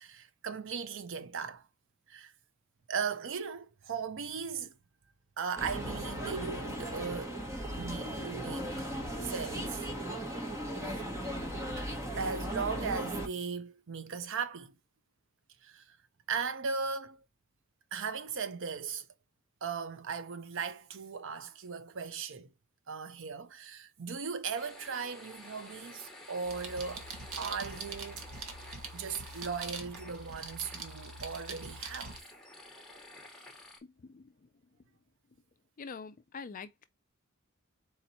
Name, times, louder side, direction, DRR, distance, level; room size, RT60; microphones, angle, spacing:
voice 1, 0.0-1.6 2.1-2.3 2.9-4.7 5.4-7.4 7.7-8.9 9.2-9.8 12.2-14.7 15.6-16.0 16.3-17.2 17.9-19.1 19.6-22.5 22.9-27.1 27.4-28.3 28.9-32.2, right 5 dB, 60° right, 0.6 m, -37 dB
sound 1, 5.6-13.3, right 1 dB, 15° right, 1.1 m, -37 dB
sound 2, 24.5-33.8, left 2 dB, ahead, 1.3 m, -52 dB
sound 3, 26.4-32.2, right 4 dB, 80° right, 1.1 m, -43 dB
voice 2, 33.8-34.3 35.8-36.8, left 5 dB, 40° left, 0.4 m, -45 dB
4.3 x 2.9 x 4.0 m
head